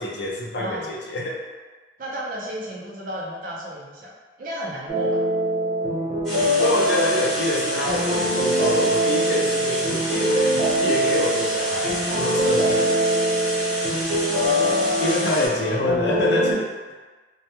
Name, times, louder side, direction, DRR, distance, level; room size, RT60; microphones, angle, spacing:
voice 1, 0.0-1.4 6.6-13.0 15.0-16.7, left 1 dB, 70° left, -2 dB, 0.5 m, -26 dB
voice 2, 0.5-0.9 2.0-4.1 4.4-5.2 14.4-15.8 16.3-16.5, equal, 50° right, -4 dB, 0.5 m, -33 dB
sound 1, 4.9-16.5, right 1 dB, 75° right, 0.8 m, -23 dB
sound 2, 6.2-15.5, equal, 5° left, 0.8 m, -30 dB
2.1 x 2.1 x 2.9 m, 1.3 s
head